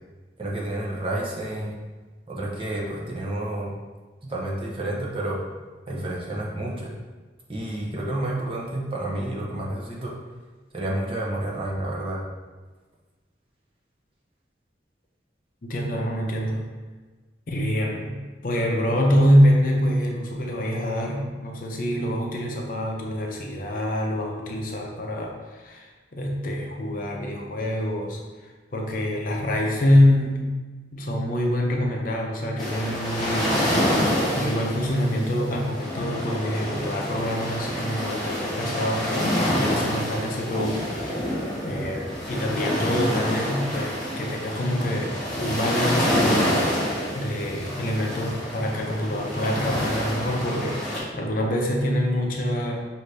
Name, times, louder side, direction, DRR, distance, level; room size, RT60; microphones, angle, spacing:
voice 1, 0.4-1.7 2.3-3.7 4.3-5.4 5.9-6.9 7.5-10.1 10.7-12.2, right 1 dB, 30° right, -4 dB, 0.7 m, -30 dB
voice 2, 15.6-16.6 17.5-30.5 30.9-33.9 34.3-41.2 41.6-46.9 47.1-52.8, equal, 50° left, 0 dB, 0.6 m, -25 dB
Calm Waves, 32.6-51.0, equal, 5° left, 1.2 m, -27 dB
5.2 x 2.7 x 3.3 m, 1.3 s
head